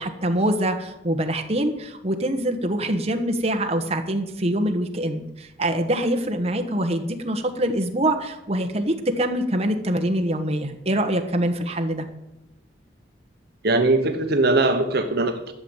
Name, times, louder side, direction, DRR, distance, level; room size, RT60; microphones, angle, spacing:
voice 1, 0.0-12.1, right 1 dB, 35° right, 5 dB, 1.3 m, -24 dB
voice 2, 13.6-15.5, right 2 dB, 60° right, 6 dB, 1.0 m, -20 dB
12.5 x 7.1 x 8.0 m, 0.87 s
head